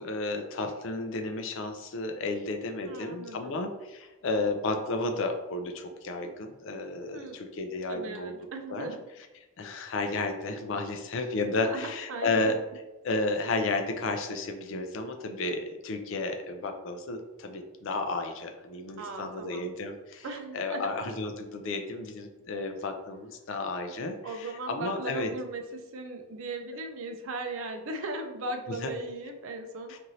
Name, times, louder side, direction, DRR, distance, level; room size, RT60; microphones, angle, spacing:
voice 1, 0.0-8.3 8.7-8.9 9.6-12.6 13.0-20.3 20.5-25.3 28.7-28.9 29.9-30.0, left 2 dB, 55° left, 5 dB, 0.4 m, -32 dB
voice 2, 2.8-3.6 7.1-7.4 7.9-9.0 11.5-12.6 19.0-19.7 20.2-20.9 24.2-30.0, right 2 dB, 65° right, 5 dB, 0.4 m, -38 dB
3.1 x 2.6 x 2.6 m, 1.1 s
head